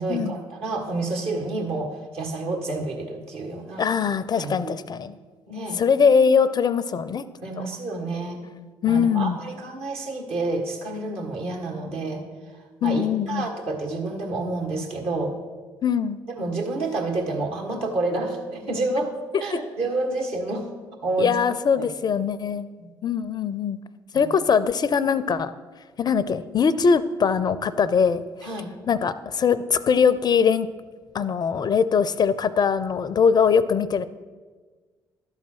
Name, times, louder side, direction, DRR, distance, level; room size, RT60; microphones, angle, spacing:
voice 1, 0.0-3.9 4.4-4.7 5.5-5.8 7.4-8.4 8.8-12.2 12.5-15.4 16.3-19.1 19.4-21.3 21.8-21.9 22.8-22.9 24.1-24.3 28.4-28.7, right 2 dB, 60° right, 0 dB, 1.6 m, -29 dB
voice 2, 3.8-5.1 5.8-7.2 7.6-7.7 8.8-9.4 12.8-13.5 15.8-16.2 21.2-22.7 23.0-23.8 24.1-25.5 26.0-28.2 28.9-30.7 31.1-34.1, left 6 dB, 40° left, 15 dB, 0.4 m, -21 dB
12.0 x 4.1 x 6.2 m, 1.4 s
figure-of-eight pair, 45°, 11 cm